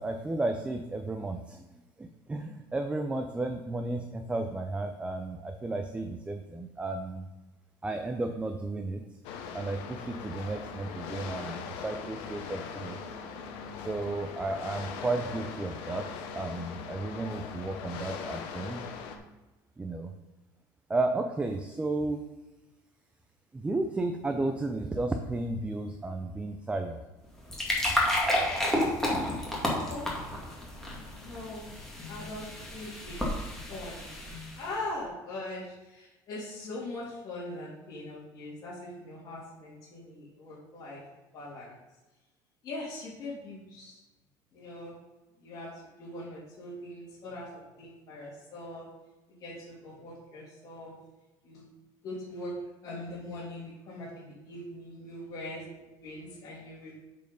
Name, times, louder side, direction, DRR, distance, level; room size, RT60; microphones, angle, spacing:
voice 1, 0.0-1.6 2.0-7.3 7.8-9.0 9.5-13.0 13.8-16.1 16.3-18.8 19.8-20.1 20.9-22.2 23.5-27.0, right 2 dB, 15° right, 5 dB, 0.6 m, -33 dB
sound 1, 9.2-19.2, left 6 dB, 80° left, 0.9 m, -40 dB
sound 2, 27.2-34.8, left 1 dB, 5° left, 2.1 m, -31 dB
voice 2, 29.7-30.1 31.2-31.7 32.1-33.2 33.7-34.1 34.5-41.0 41.3-41.8 42.6-44.0 44.5-45.0 45.4-48.9 49.4-50.9 51.4-51.7 52.0-52.6 52.8-57.0, left 1 dB, 45° left, -8 dB, 2.9 m, -41 dB
7.9 x 4.7 x 5.3 m, 1.1 s
cardioid pair, 125°, 9 cm